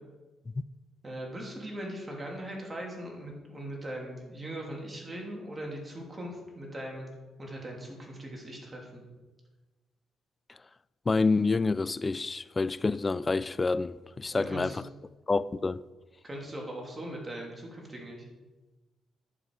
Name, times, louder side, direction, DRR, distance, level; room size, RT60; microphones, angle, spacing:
voice 1, 1.0-7.1 7.4-9.0 14.3-14.8 16.2-18.3, right 1 dB, 25° right, 3.0 m, -40 dB
voice 2, 11.1-14.8 15.3-15.8, left 3 dB, 25° left, 0.3 m, -28 dB
11.0 x 7.3 x 4.8 m
cardioid pair, 90°, 0 cm